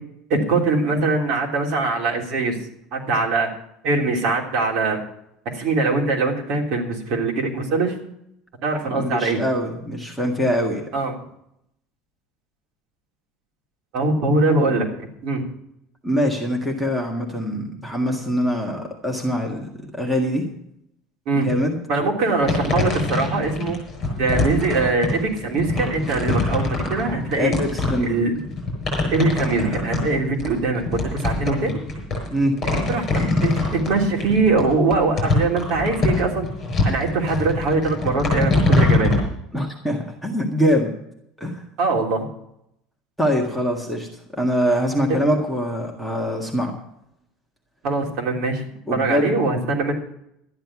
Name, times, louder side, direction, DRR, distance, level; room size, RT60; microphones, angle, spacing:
voice 1, 0.3-2.6 2.9-3.5 3.8-5.0 5.4-8.0 8.6-9.4 10.9-11.1 13.9-14.9 15.2-15.4 21.3-21.5 21.9-23.8 24.1-27.5 28.0-28.3 29.1-31.7 32.9-36.5 36.8-39.2 41.8-42.3 47.8-48.6 48.9-49.9, right 3 dB, 50° right, 0 dB, 3.2 m, -22 dB
voice 2, 8.9-10.9 16.0-20.5 21.4-21.8 27.4-28.3 29.0-29.1 32.3-32.6 39.5-40.9 41.4-41.6 43.2-44.1 44.3-46.7 48.9-49.5, equal, ahead, -1 dB, 1.8 m, -23 dB
sound 1, 22.5-39.2, left 2 dB, 20° left, 5.9 m, -23 dB
13.0 x 10.5 x 5.9 m, 0.76 s
cardioid pair, 175°, 0 cm